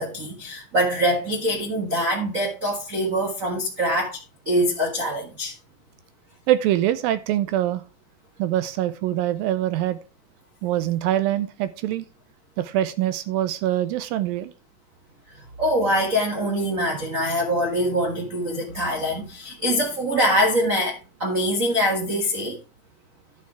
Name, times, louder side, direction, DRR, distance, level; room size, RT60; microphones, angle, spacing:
voice 1, 0.0-4.2 4.4-5.5 15.6-22.6, equal, 60° right, 0.8 m, -24 dB
voice 2, 6.5-7.8 8.4-10.0 10.6-12.1 12.6-14.5, right 13 dB, 80° right, 2.3 m, -24 dB
11.0 x 5.9 x 4.6 m
omnidirectional pair, 4.2 m